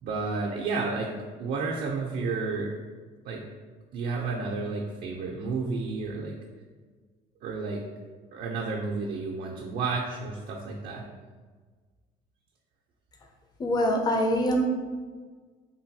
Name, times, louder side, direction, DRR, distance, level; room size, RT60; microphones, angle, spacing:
voice 1, 0.0-1.1 1.4-2.7 3.2-3.4 3.9-6.4 7.4-7.8 8.3-11.0, right 4 dB, 65° right, -1 dB, 0.4 m, -31 dB
voice 2, 13.6-14.7, equal, 25° left, 2 dB, 0.4 m, -24 dB
3.2 x 2.2 x 2.6 m, 1.5 s
cardioid pair, 110°, 17 cm